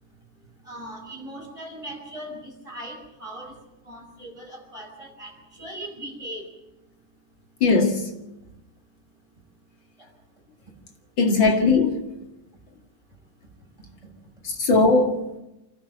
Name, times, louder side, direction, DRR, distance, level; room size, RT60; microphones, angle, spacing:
voice 1, 0.6-3.5 3.8-6.5 10.0-10.1, right 1 dB, 15° right, 5.8 m, -39 dB
voice 2, 7.6-8.1 11.2-12.0 14.4-15.2, left 3 dB, 60° left, 3.0 m, -19 dB
28.0 x 12.5 x 8.1 m
omnidirectional pair, 2.3 m